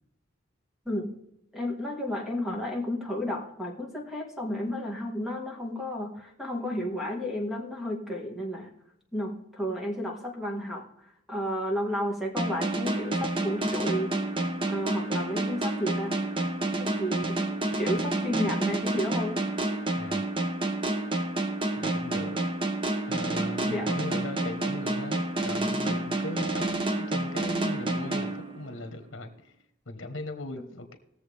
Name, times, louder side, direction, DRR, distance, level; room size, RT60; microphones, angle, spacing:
voice 1, 0.9-1.2 1.5-8.7 9.1-10.9 11.3-14.3 14.7-16.2 16.8-17.4 17.8-19.6 23.7-23.9, equal, ahead, 0 dB, 1.8 m, -32 dB
sound 1, 12.4-29.0, right 2 dB, 25° right, 0.9 m, -29 dB
voice 2, 21.8-22.4 23.1-29.5 29.9-31.0, left 1 dB, 70° left, 7 dB, 1.4 m, -38 dB
19.0 x 7.0 x 3.5 m, 0.82 s
head